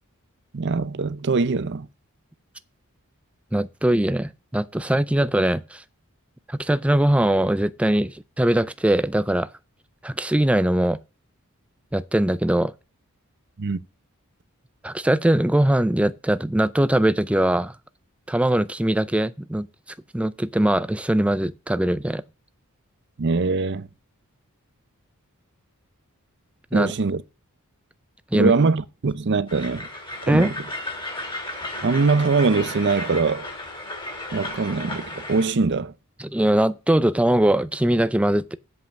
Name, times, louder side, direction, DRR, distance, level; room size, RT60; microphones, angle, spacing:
voice 1, 0.5-1.9 13.6-13.8 23.2-23.9 26.7-27.2 28.3-29.9 30.3-30.5 31.8-33.5 34.3-35.9, right 4 dB, 55° right, 0.6 m, -22 dB
voice 2, 3.5-5.8 6.5-9.5 10.0-11.0 11.9-12.7 14.8-17.7 18.3-19.7 20.1-22.2 26.7-26.9 28.3-28.5 30.3-30.5 36.2-38.4, right 1 dB, 5° right, 0.4 m, -21 dB
Train, 29.5-35.5, left 2 dB, 25° left, 3.0 m, -34 dB
7.9 x 5.5 x 7.1 m
head